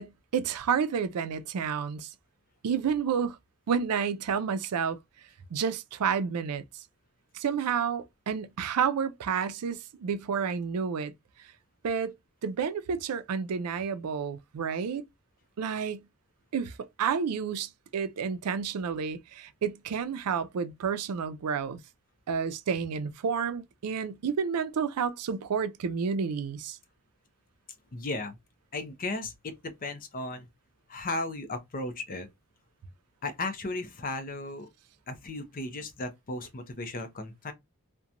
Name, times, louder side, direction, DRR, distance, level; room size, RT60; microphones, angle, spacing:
voice 1, 0.0-2.1 2.6-3.4 3.7-5.0 5.5-6.8 7.3-11.1 11.8-12.1 12.4-15.0 15.6-16.1 16.5-21.8 22.3-26.8, right 6 dB, 90° right, 0.4 m, -30 dB
voice 2, 27.9-28.4 28.7-30.5 30.9-32.3 33.2-34.7 35.1-37.5, left 2 dB, 40° left, 0.6 m, -35 dB
2.8 x 2.2 x 2.4 m
head